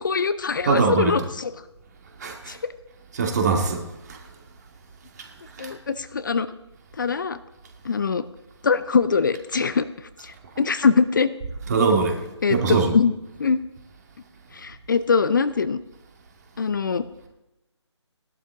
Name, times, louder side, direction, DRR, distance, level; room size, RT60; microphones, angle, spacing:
voice 1, 0.0-1.5 2.5-2.6 5.6-6.5 7.0-7.4 7.8-8.2 8.6-9.9 10.2-11.3 12.4-13.1 13.4-13.6 14.5-15.8 16.6-17.0, left 5 dB, 45° left, 13 dB, 0.6 m, -22 dB
voice 2, 0.7-1.1 2.2-2.5 3.1-3.8 4.1-4.2 5.6-5.7 11.7-12.2 12.5-12.9, right 4 dB, 35° right, 2 dB, 2.1 m, -22 dB
17.0 x 12.0 x 3.6 m, 0.95 s
figure-of-eight pair, 150°, 15 cm